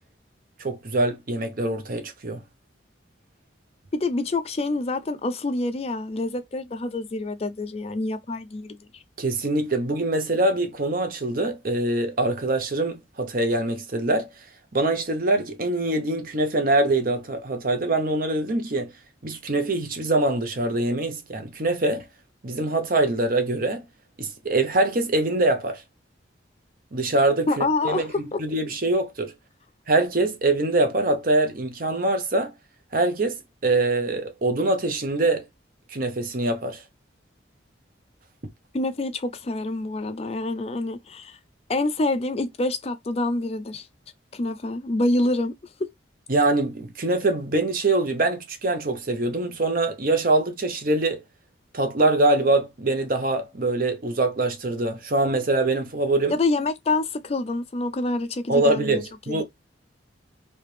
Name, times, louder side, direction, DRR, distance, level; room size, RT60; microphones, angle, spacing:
voice 1, 0.6-2.4 9.2-14.3 14.7-18.9 19.2-22.1 22.4-23.8 24.2-25.8 26.9-28.1 28.4-29.3 29.9-32.5 32.9-35.4 35.9-36.8 46.3-51.2 51.7-56.4 58.5-59.4, right 2 dB, 50° right, 0.8 m, -24 dB
voice 2, 3.9-9.0 27.5-28.4 38.7-41.4 41.7-43.9 44.3-45.5 45.8-45.9 56.3-59.4, left 2 dB, 35° left, 0.4 m, -27 dB
3.3 x 2.8 x 3.1 m
head